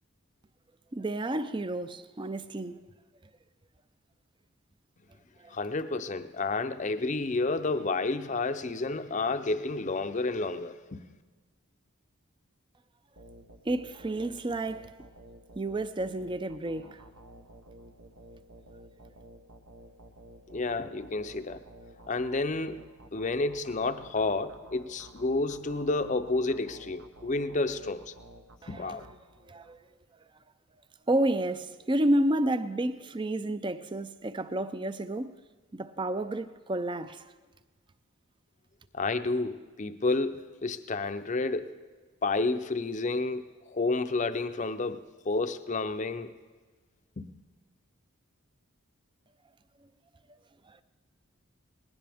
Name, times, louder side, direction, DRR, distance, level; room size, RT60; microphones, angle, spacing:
voice 1, 0.9-2.8 5.4-5.5 13.7-14.9 15.6-17.0 28.6-29.0 29.5-29.8 31.1-35.3 35.7-37.2 50.7-50.8, right 1 dB, 20° right, 0.5 m, -30 dB
voice 2, 5.5-11.0 20.5-21.6 22.1-22.8 23.1-28.1 28.7-29.1 38.9-41.7 42.2-46.3 47.2-47.3, left 3 dB, 35° left, 0.6 m, -30 dB
sound 1, 13.2-29.8, right 1 dB, 75° right, 1.2 m, -52 dB
20.0 x 18.0 x 3.5 m
head